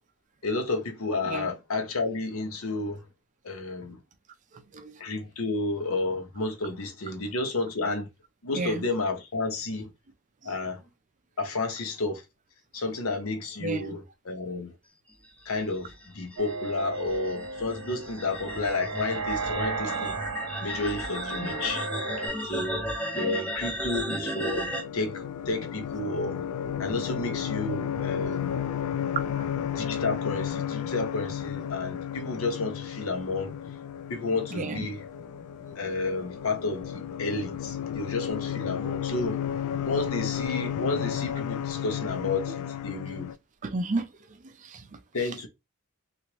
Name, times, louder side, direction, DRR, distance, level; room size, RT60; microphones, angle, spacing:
voice 1, 0.4-3.0 3.4-4.0 5.0-8.1 8.4-9.9 10.4-10.8 11.4-12.2 12.7-14.7 15.5-20.1 20.6-21.9 22.4-22.9 23.1-26.4 26.8-28.6 29.7-33.5 34.1-35.0 35.7-39.4 39.8-43.3 45.1-45.5, left 3 dB, 70° left, 0.8 m, -31 dB
voice 2, 8.5-8.8 13.6-14.0 21.4-21.6 23.1-23.3 29.4-29.5 34.5-34.9 43.6-44.1 44.4-45.0, right 2 dB, 35° right, 0.4 m, -33 dB
sound 1, 15.5-24.8, equal, 5° left, 0.6 m, -34 dB
sound 2, 16.4-22.3, right 4 dB, 85° right, 0.6 m, -35 dB
sound 3, 23.9-43.4, left 9 dB, 85° left, 0.3 m, -33 dB
3.1 x 2.5 x 2.9 m
head